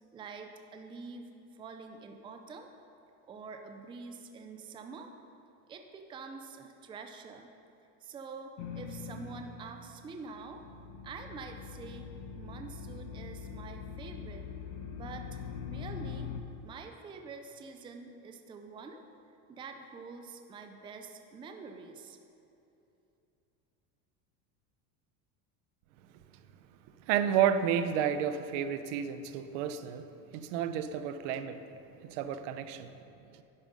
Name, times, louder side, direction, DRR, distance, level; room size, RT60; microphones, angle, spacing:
voice 1, 0.1-2.7 3.3-5.1 5.7-7.5 8.0-10.6 11.0-14.5 14.9-16.3 16.6-19.0 19.5-22.2, right 4 dB, 15° right, 5 dB, 0.5 m, -46 dB
sound 1, 8.6-10.0 10.3-16.4, left 6 dB, 90° left, 1.0 m, -43 dB
voice 2, 27.1-31.6 32.0-32.9, right 9 dB, 75° right, 10 dB, 0.8 m, -31 dB
11.0 x 8.9 x 5.4 m, 2.9 s
cardioid pair, 160°, 37 cm